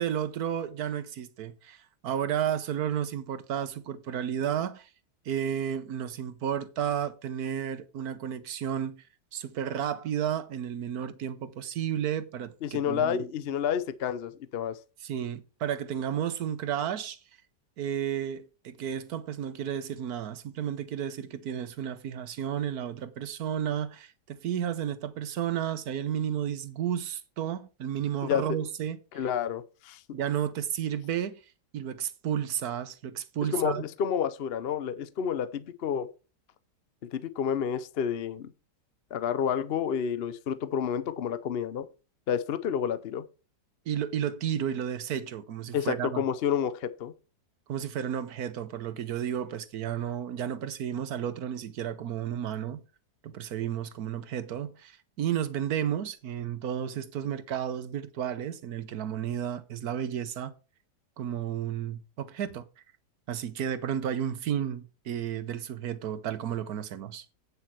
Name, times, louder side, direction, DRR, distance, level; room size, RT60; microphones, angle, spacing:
voice 1, 0.0-4.9 5.3-9.0 9.3-13.3 15.0-17.2 17.8-29.2 30.1-31.4 31.7-33.8 43.9-46.2 47.7-52.8 53.2-60.5 61.2-62.7 63.3-67.2, right 9 dB, 65° right, 1.3 m, -32 dB
voice 2, 12.6-14.8 28.2-28.4 29.1-30.0 33.5-36.1 37.1-38.5 39.1-41.9 42.3-43.2 45.7-47.1, left 8 dB, 60° left, 0.6 m, -29 dB
8.7 x 7.9 x 4.5 m
omnidirectional pair, 1.8 m